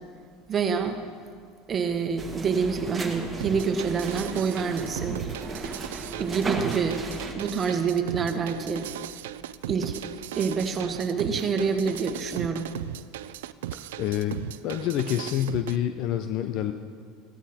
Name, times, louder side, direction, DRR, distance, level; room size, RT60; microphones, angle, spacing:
voice 1, 0.5-1.0 1.7-5.2 6.2-7.0 7.3-8.9 9.7-10.0 10.3-12.7, right 5 dB, 30° right, 6 dB, 1.4 m, -27 dB
sound 1, 2.2-7.3, right 3 dB, 15° right, 2.0 m, -35 dB
sound 2, 3.4-15.8, right 13 dB, 85° right, 0.4 m, -37 dB
voice 2, 14.0-16.7, left 11 dB, 55° left, 9 dB, 0.7 m, -27 dB
16.0 x 14.0 x 4.4 m, 2.1 s
supercardioid pair, 105°, 0 cm